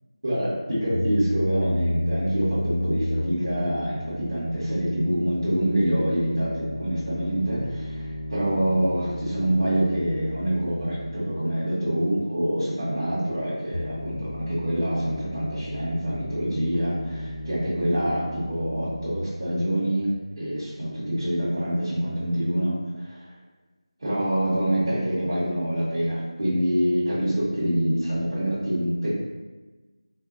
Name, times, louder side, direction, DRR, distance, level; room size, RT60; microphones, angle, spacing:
voice 1, 0.2-23.3 24.0-29.1, right 1 dB, 35° right, -11 dB, 0.8 m, -26 dB
sound 1, 0.9-11.6 13.7-19.2, equal, 75° left, 0.7 m, -32 dB
3.6 x 2.2 x 2.4 m, 1.2 s
figure-of-eight pair, 175°, 3 cm